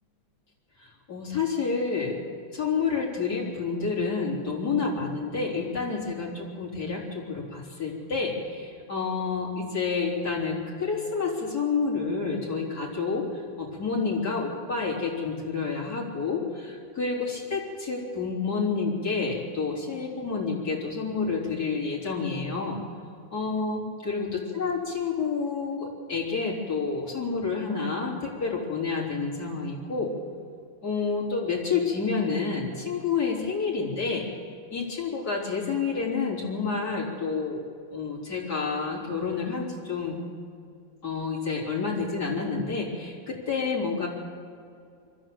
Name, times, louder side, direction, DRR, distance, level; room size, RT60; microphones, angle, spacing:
voice 1, 0.8-2.2 2.5-22.8 23.3-30.1 30.8-37.7 37.9-40.2 41.0-44.1, left 4 dB, 50° left, -4 dB, 4.2 m, -29 dB
25.0 x 14.5 x 7.7 m, 2.4 s
omnidirectional pair, 2.2 m